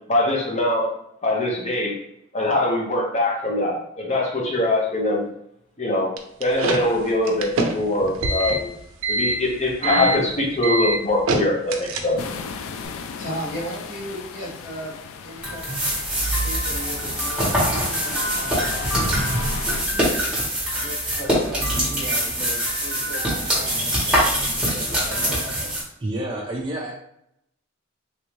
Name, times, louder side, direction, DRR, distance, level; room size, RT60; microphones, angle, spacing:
voice 1, 0.1-0.9 1.2-2.0 2.3-5.3 5.8-6.1 6.4-8.7 9.1-12.2, left 1 dB, 35° left, -1 dB, 0.8 m, -22 dB
sound 1, 6.2-12.4, right 2 dB, 80° right, 0.5 m, -25 dB
sound 2, 12.2-19.9, left 5 dB, 85° left, 0.3 m, -36 dB
voice 2, 13.1-15.9 16.3-20.1 20.7-25.8, equal, 60° left, -6 dB, 1.4 m, -37 dB
sound 3, 15.4-25.8, equal, 5° right, 1.1 m, -23 dB
voice 3, 26.0-26.9, right 1 dB, 25° right, -2 dB, 0.4 m, -29 dB
3.3 x 2.6 x 3.1 m, 0.75 s
head